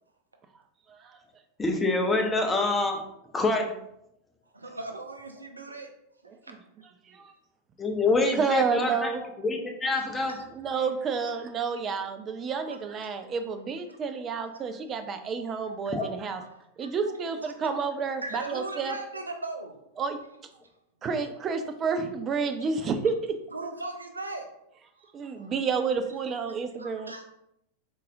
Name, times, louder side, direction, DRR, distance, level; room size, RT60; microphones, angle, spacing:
voice 1, 1.6-3.0 3.3-3.7 7.8-9.1 9.4-10.3 15.9-16.0, left 3 dB, 15° left, 3 dB, 0.6 m, -26 dB
voice 2, 4.5-5.9 6.4-6.6 10.3-10.4 12.6-12.8 13.9-14.0 14.5-14.6 16.0-16.1 16.8-17.1 17.4-17.5 18.2-19.8 23.5-24.5 25.4-25.5 26.8-27.3, right 2 dB, 80° right, 4 dB, 0.6 m, -38 dB
voice 3, 8.3-9.2 10.5-16.4 16.8-19.0 20.0-20.2 21.0-23.4 25.1-27.1, right 5 dB, 25° right, 8 dB, 0.5 m, -30 dB
4.0 x 3.7 x 2.6 m, 0.78 s
figure-of-eight pair, 90°, 0 cm